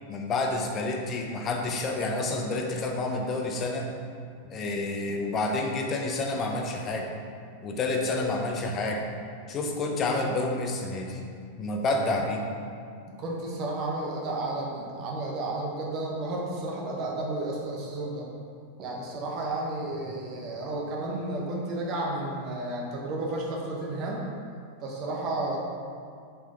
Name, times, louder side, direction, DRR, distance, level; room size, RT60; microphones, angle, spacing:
voice 1, 0.1-3.9 4.5-7.1 7.6-9.0 9.5-11.2 11.6-12.4, left 2 dB, 30° left, 2 dB, 1.1 m, -29 dB
voice 2, 13.2-18.3 18.8-24.3 24.8-25.6, right 2 dB, 40° right, -2 dB, 1.4 m, -32 dB
7.7 x 5.5 x 5.2 m, 2.3 s
figure-of-eight pair, 90°, 0 cm